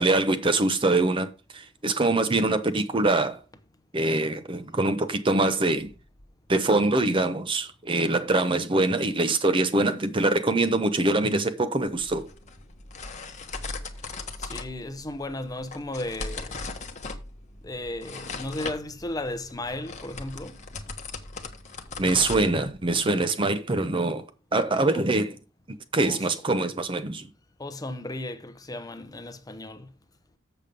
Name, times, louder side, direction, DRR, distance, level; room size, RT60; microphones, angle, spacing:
voice 1, 0.0-3.4 3.9-5.9 6.5-12.3 22.0-24.2 24.5-25.4 25.9-27.3, right 2 dB, 25° right, 0.6 m, -24 dB
sound 1, 11.9-23.0, left 3 dB, 35° left, 1.0 m, -39 dB
voice 2, 14.4-16.6 17.6-20.6 24.9-25.0 26.0-26.2 27.6-29.9, left 1 dB, 20° left, 0.7 m, -35 dB
7.2 x 6.7 x 5.1 m
head